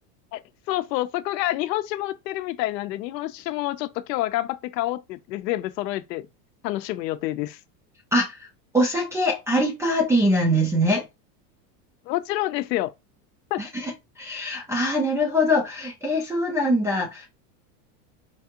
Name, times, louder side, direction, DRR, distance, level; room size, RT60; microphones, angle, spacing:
voice 1, 0.7-6.3 6.6-7.6 12.1-12.9 13.5-13.6, left 16 dB, 80° left, 0.6 m, -28 dB
voice 2, 8.7-11.0 13.6-13.9 14.2-17.3, equal, 5° right, 0.3 m, -23 dB
4.6 x 2.4 x 2.8 m
supercardioid pair, 125°, 49 cm